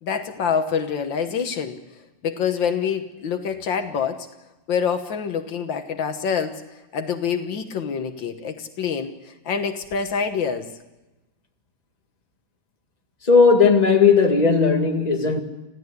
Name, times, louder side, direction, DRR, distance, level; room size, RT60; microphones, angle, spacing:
voice 1, 0.0-1.8 2.2-4.3 4.7-6.6 6.9-10.7, left 6 dB, 85° left, 2.0 m, -26 dB
voice 2, 13.2-15.4, left 5 dB, 20° left, 2.0 m, -16 dB
26.5 x 16.0 x 8.3 m
omnidirectional pair, 2.0 m